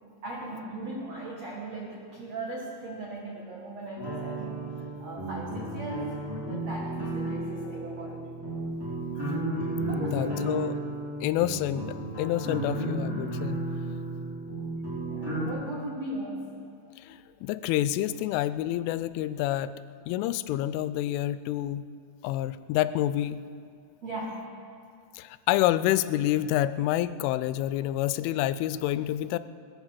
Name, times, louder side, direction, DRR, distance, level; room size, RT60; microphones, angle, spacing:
voice 1, 0.2-8.4 9.9-10.5 15.1-16.5 24.0-24.4, right 2 dB, 75° right, -2 dB, 1.5 m, -38 dB
sound 1, 4.0-15.5, right 2 dB, 5° right, 2.7 m, -33 dB
voice 2, 7.5-8.2 10.0-10.8 11.2-13.6 17.0-21.8 22.2-23.4 25.2-29.4, left 13 dB, 90° left, 14 dB, 3.0 m, -28 dB
21.0 x 8.5 x 7.3 m, 2.3 s
omnidirectional pair, 5.5 m